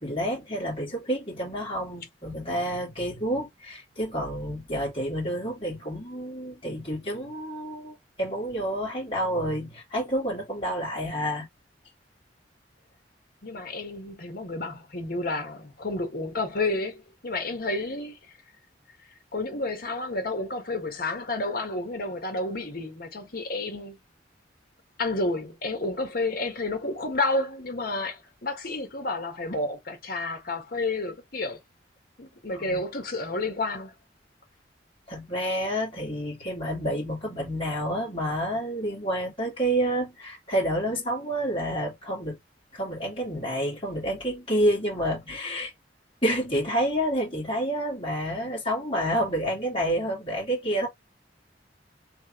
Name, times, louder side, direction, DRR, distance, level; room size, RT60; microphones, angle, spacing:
voice 1, 0.0-11.5 32.5-32.9 35.1-42.4 42.7-45.7 46.2-50.9, equal, 30° left, 2.1 m, -29 dB
voice 2, 13.4-18.2 19.3-24.0 25.0-31.6 32.2-33.9, left 2 dB, 55° left, 1.4 m, -30 dB
3.4 x 3.3 x 3.0 m
head